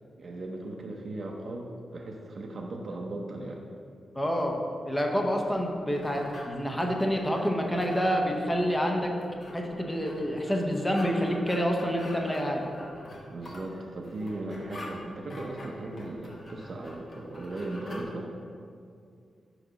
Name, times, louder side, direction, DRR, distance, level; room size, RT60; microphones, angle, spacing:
voice 1, 0.2-3.6 13.3-18.3, right 2 dB, 45° right, 0 dB, 0.6 m, -37 dB
voice 2, 4.2-4.6 4.9-9.1 9.5-12.6, equal, 10° left, 1 dB, 0.7 m, -28 dB
sound 1, 5.4-18.0, left 1 dB, 40° left, 0.9 m, -46 dB
5.3 x 4.9 x 5.0 m, 2.4 s
wide cardioid pair, 125°, 0 cm